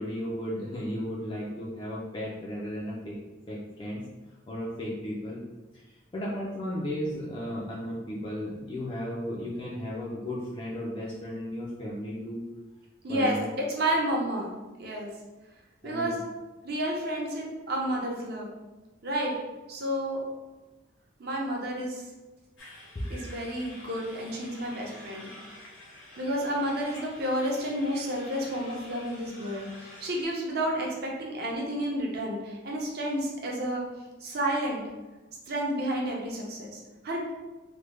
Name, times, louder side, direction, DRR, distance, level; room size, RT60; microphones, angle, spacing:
voice 1, 0.0-3.2 3.5-4.0 4.5-5.4 5.7-12.4 13.1-13.5 15.8-16.2 22.9-23.0, equal, 25° left, -5 dB, 0.4 m, -35 dB
voice 2, 13.0-14.5 14.8-15.1 15.8-16.2 16.6-18.5 19.0-19.3 19.7-20.2 21.2-22.0 23.1-25.3 26.2-33.8 34.2-34.8 35.5-37.3, right 1 dB, 55° right, -2 dB, 0.7 m, -30 dB
sound 1, 22.6-30.2, left 1 dB, 80° left, 0.8 m, -48 dB
3.3 x 2.1 x 3.2 m, 1.1 s
head